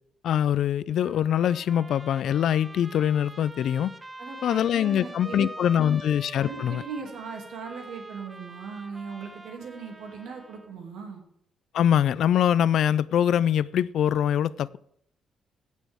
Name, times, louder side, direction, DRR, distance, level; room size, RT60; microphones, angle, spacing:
voice 1, 0.2-3.9 4.4-6.8 11.7-14.8, left 10 dB, 70° left, 0.3 m, -23 dB
Trumpet, 1.0-10.7, right 1 dB, 20° right, 0.9 m, -44 dB
voice 2, 4.2-5.5 5.9-6.0 6.4-11.2, right 5 dB, 80° right, 2.5 m, -39 dB
17.5 x 6.2 x 3.6 m
cardioid pair, 90°, 0 cm